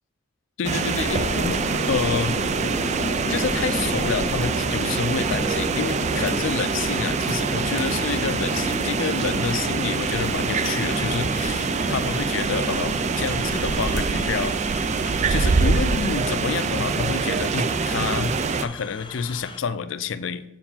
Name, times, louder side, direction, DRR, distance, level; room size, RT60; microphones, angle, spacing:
voice 1, 0.6-1.6 1.9-2.4 3.3-14.5 15.0-18.3 18.6-20.4, left 5 dB, 75° left, 12 dB, 0.4 m, -28 dB
sound 1, 0.6-18.7, right 4 dB, 35° right, 0.4 m, -25 dB
sound 2, 1.0-19.6, left 2 dB, 25° left, 0.6 m, -34 dB
7.5 x 4.8 x 5.4 m, 0.91 s
head